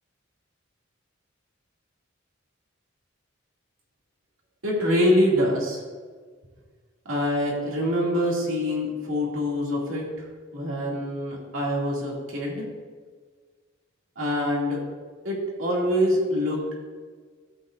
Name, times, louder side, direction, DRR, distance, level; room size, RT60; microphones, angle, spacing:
voice 1, 4.6-5.8 7.1-10.1 10.5-12.7 14.2-14.8 15.2-16.9, equal, 75° right, -3 dB, 2.4 m, -25 dB
13.0 x 7.4 x 2.5 m, 1.5 s
head